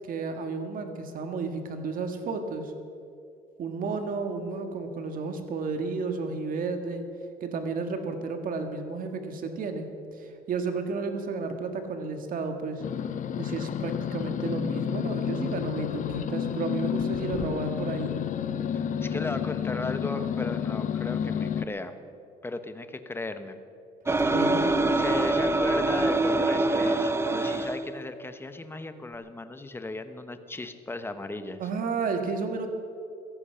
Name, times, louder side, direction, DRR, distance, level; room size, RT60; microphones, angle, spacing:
voice 1, 0.1-2.7 3.6-7.0 7.4-9.9 10.2-12.8 13.4-18.1 24.2-24.6 31.6-32.7, right 4 dB, 55° right, 6 dB, 1.8 m, -32 dB
sound 1, 12.8-21.6, left 8 dB, 50° left, 0.7 m, -30 dB
voice 2, 18.7-21.9 22.4-23.6 24.0-24.3 24.9-31.6, left 2 dB, 15° left, 9 dB, 1.1 m, -36 dB
sound 2, 24.1-27.8, right 2 dB, 15° right, 0.9 m, -24 dB
16.5 x 14.5 x 5.6 m, 2.5 s
cardioid pair, 110°, 17 cm